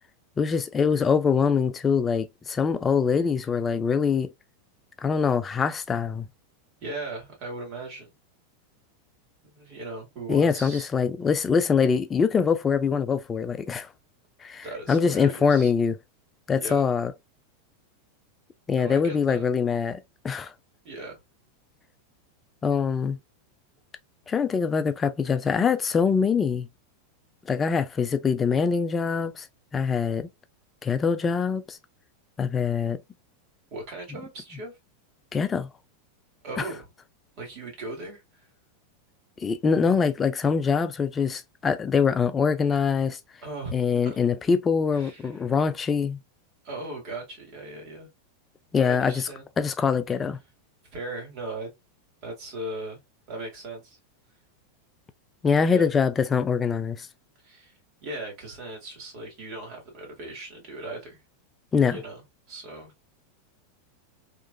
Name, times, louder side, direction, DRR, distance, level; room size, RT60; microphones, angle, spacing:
voice 1, 0.4-4.3 5.0-6.3 10.3-13.9 14.4-16.0 16.5-17.1 18.7-20.5 22.6-23.2 24.3-26.7 27.5-29.5 29.7-30.3 30.8-31.8 32.4-33.0 35.3-35.7 39.4-43.2 43.7-46.2 48.7-49.3 49.6-50.4 55.4-57.1 61.7-62.0, left 6 dB, 20° left, 0.4 m, -24 dB
voice 2, 6.8-8.1 9.4-10.9 14.6-15.7 16.6-16.9 18.7-19.5 20.8-21.2 33.7-34.7 36.4-36.9 37.4-38.5 43.4-43.8 44.9-45.4 46.6-48.1 48.8-49.5 50.9-51.7 52.2-53.0 53.3-54.0 55.7-55.9 57.4-57.7 58.0-61.2 61.9-62.9, right 2 dB, 45° right, 1.9 m, -38 dB
3.0 x 2.4 x 2.2 m
supercardioid pair, 135°, 0 cm